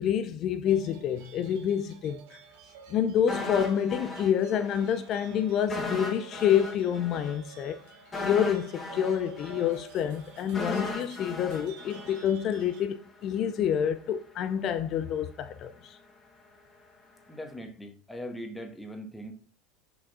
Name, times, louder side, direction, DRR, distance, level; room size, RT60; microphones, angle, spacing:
voice 1, 0.0-2.4 2.9-7.8 8.2-16.0, left 9 dB, 45° left, 0.5 m, -28 dB
sound 1, 0.6-12.8, right 7 dB, 65° right, 1.3 m, -50 dB
sound 2, 3.3-4.9 5.2-5.3 5.7-12.8 13.1-13.2, left 2 dB, 25° left, 1.8 m, -37 dB
voice 2, 17.3-19.3, equal, 10° left, 1.3 m, -40 dB
5.9 x 5.3 x 3.7 m
hypercardioid pair, 85°, 0 cm